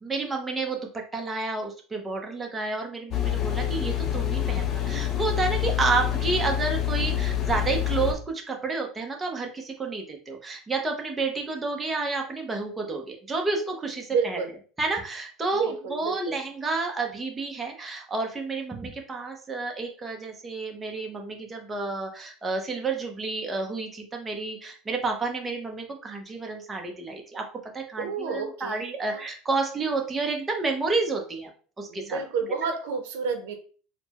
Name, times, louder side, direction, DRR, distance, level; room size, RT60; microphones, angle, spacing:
voice 1, 0.0-14.4 14.8-27.4 27.7-31.5 31.8-32.2, right 3 dB, 15° right, 2 dB, 0.7 m, -30 dB
sound 1, 3.1-8.1, left 11 dB, 40° left, 0.6 m, -27 dB
voice 2, 14.1-14.5 15.5-16.4 28.0-29.2 31.8-33.5, right 5 dB, 85° right, 6 dB, 0.6 m, -30 dB
4.2 x 2.1 x 2.9 m, 0.41 s
supercardioid pair, 130°, 0 cm